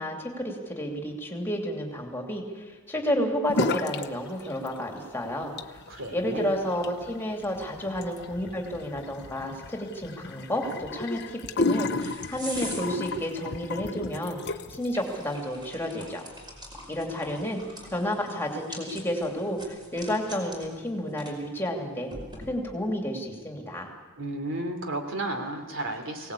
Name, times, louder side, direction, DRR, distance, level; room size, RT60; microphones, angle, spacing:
voice 1, 0.0-5.5 6.1-16.2 16.9-17.6 17.9-22.1 22.5-23.9, equal, 10° left, 1 dB, 2.9 m, -31 dB
sound 1, 3.5-4.1 4.4-5.0 5.4-14.9, left 3 dB, 50° left, 0.9 m, -33 dB
voice 2, 5.9-6.5 24.2-26.3, right 1 dB, 60° right, 5 dB, 3.2 m, -33 dB
sound 2, 11.5-22.9, equal, 20° right, 5.2 m, -45 dB
23.0 x 18.5 x 8.5 m, 1.4 s
head